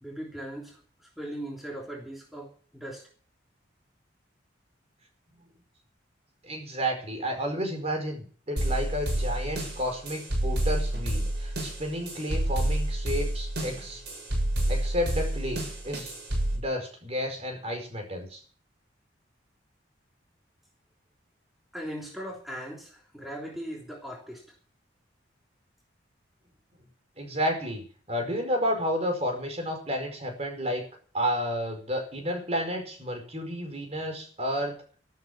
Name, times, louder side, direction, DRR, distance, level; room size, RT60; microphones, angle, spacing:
voice 1, 0.0-3.1 21.7-24.4, equal, ahead, -2 dB, 3.2 m, -39 dB
voice 2, 6.4-14.0 14.7-16.1 16.5-18.4 27.2-30.8 31.1-34.8, equal, 35° right, 4 dB, 4.9 m, -31 dB
sound 1, 8.6-16.6, right 1 dB, 65° right, 7.6 m, -29 dB
13.5 x 12.5 x 7.0 m, 0.43 s
head